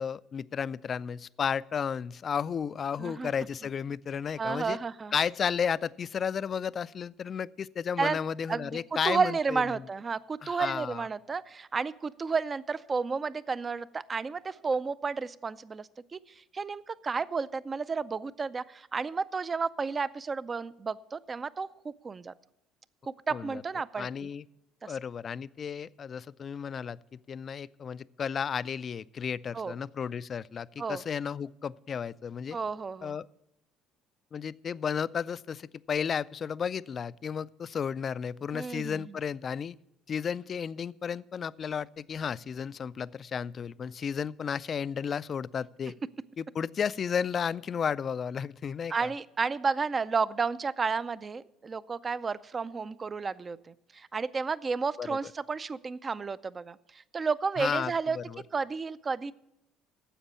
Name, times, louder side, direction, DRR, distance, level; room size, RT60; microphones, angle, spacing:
voice 1, 0.0-4.8 5.1-9.8 10.4-11.0 23.3-23.6 24.0-24.4 24.9-32.6 33.0-33.3 34.3-39.8 40.1-45.9 46.4-49.1 55.0-55.2 57.6-58.4, left 7 dB, 45° left, 18 dB, 0.3 m, -33 dB
voice 2, 3.0-3.3 4.4-5.1 8.0-8.2 8.5-8.8 9.0-22.3 23.1-24.3 24.8-25.0 29.5-29.7 30.8-31.0 32.5-33.2 38.5-39.2 48.9-58.2 58.5-59.3, right 5 dB, 30° right, 18 dB, 0.4 m, -32 dB
10.0 x 7.3 x 6.8 m, 0.84 s
supercardioid pair, 75°, 0 cm